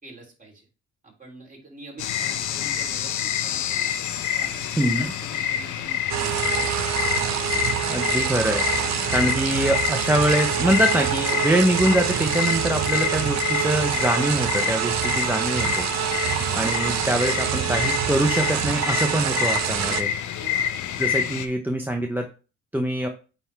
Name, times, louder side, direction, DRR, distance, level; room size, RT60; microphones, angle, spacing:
voice 1, 0.0-0.6 1.0-3.9 4.3-6.9 20.3-20.7, right 2 dB, 25° right, -2 dB, 3.3 m, -45 dB
sound 1, 2.0-21.5, left 9 dB, 75° left, 0.8 m, -28 dB
sound 2, 6.1-20.0, right 11 dB, 65° right, 0.7 m, -26 dB
voice 2, 7.9-8.7 9.1-15.9 16.5-20.1 21.0-22.3 22.7-23.1, right 1 dB, 5° right, 4 dB, 0.7 m, -24 dB
8.9 x 3.5 x 3.4 m, 0.34 s
cardioid pair, 90°, 30 cm